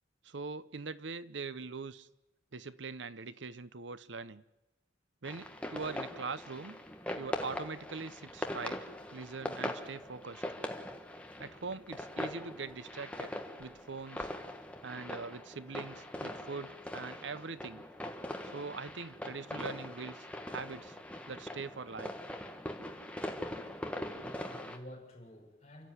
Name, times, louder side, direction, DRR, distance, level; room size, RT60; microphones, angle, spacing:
voice 1, 0.2-2.1 2.5-4.4 5.2-6.8 7.2-8.8 9.1-10.4 11.4-13.3 13.6-14.3 14.8-17.8 18.5-21.0 21.3-22.1, right 4 dB, 75° right, 0.8 m, -42 dB
sound 1, 5.2-24.8, left 1 dB, 5° left, 1.6 m, -42 dB
voice 2, 23.7-25.9, left 1 dB, 35° left, 6.5 m, -51 dB
29.5 x 13.5 x 9.5 m
head